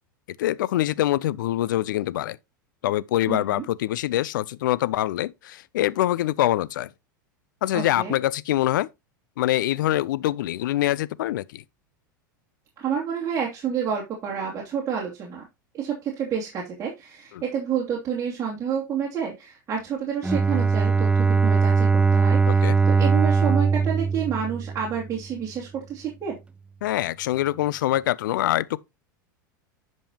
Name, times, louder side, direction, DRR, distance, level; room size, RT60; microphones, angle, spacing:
voice 1, 0.3-2.4 2.8-6.9 7.6-8.9 9.4-11.6 22.5-22.8 26.8-28.8, left 14 dB, 70° left, 0.5 m, -24 dB
voice 2, 3.3-3.6 7.7-8.1 12.8-15.5 15.7-26.4, right 7 dB, 30° right, 2.7 m, -29 dB
Bowed string instrument, 20.2-25.2, right 5 dB, 10° right, 0.6 m, -20 dB
10.5 x 5.5 x 2.9 m
hypercardioid pair, 90°, 11 cm